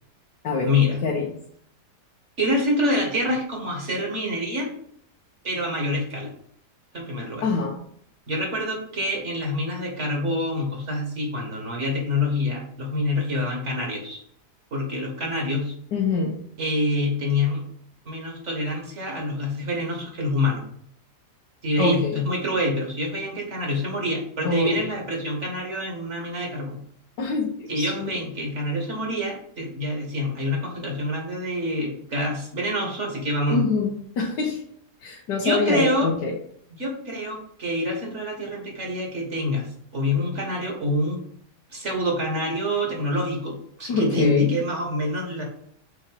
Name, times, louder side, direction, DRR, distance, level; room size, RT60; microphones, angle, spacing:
voice 1, 0.6-1.0 2.4-4.7 5.4-6.3 6.9-7.5 8.3-14.2 14.7-15.7 16.6-17.6 18.1-20.6 21.6-26.8 27.7-33.6 35.4-36.1 36.8-41.2 41.7-45.4, left 1 dB, 45° right, 0 dB, 1.9 m, -26 dB
voice 2, 7.4-7.8 15.9-16.4 21.8-22.2 24.4-24.9 27.2-28.1 33.5-34.6 35.0-36.3 43.9-44.6, left 4 dB, 85° left, -2 dB, 1.6 m, -25 dB
6.1 x 4.3 x 5.2 m, 0.65 s
omnidirectional pair, 1.8 m